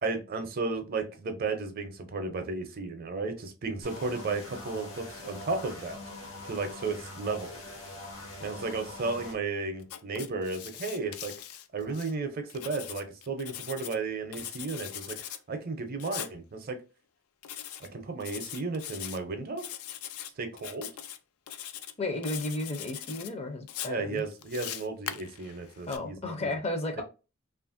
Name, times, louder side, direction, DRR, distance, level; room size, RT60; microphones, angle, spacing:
voice 1, 0.0-6.0 6.4-7.6 8.4-11.3 11.7-16.8 17.8-19.7 20.4-20.9 23.9-26.6 27.0-27.1, right 3 dB, 45° right, 0.5 m, -34 dB
sound 1, 3.8-9.3, left 2 dB, 70° left, 0.9 m, -43 dB
Writing, 9.8-12.1 12.5-14.0 14.3-15.4 16.0-16.3 17.4-17.9 18.2-19.2 19.6-20.3 20.6-21.2 21.5-21.9 22.2-23.3 23.7-26.0, left 10 dB, 90° left, 0.3 m, -41 dB
voice 2, 22.0-24.2 25.9-27.0, left 2 dB, 30° left, 0.5 m, -33 dB
2.9 x 2.4 x 2.5 m
head